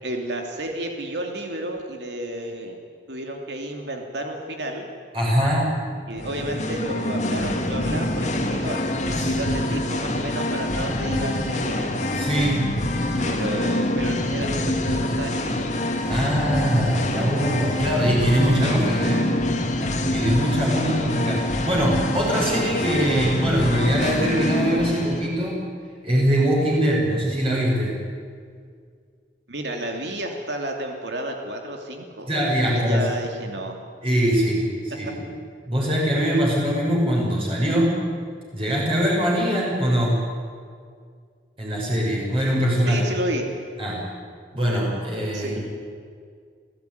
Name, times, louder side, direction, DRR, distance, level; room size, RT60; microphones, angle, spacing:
voice 1, 0.0-2.8 3.1-4.9 6.1-11.9 13.2-15.7 20.6-20.8 29.5-32.3 32.7-33.8 42.9-43.5 45.3-45.6, right 1 dB, 70° right, 3 dB, 2.9 m, -31 dB
voice 2, 5.1-5.7 9.2-9.3 12.1-12.7 16.0-19.3 20.1-21.4 21.6-25.6 26.0-27.9 32.3-33.1 34.0-35.1 35.7-38.0 38.5-40.2 41.6-43.0 43.8-44.0 44.5-45.6, equal, 30° right, -4 dB, 6.5 m, -22 dB
Singing, 6.1-25.3, left 1 dB, 40° left, 2.5 m, -25 dB
28.0 x 16.5 x 9.6 m, 2.1 s
head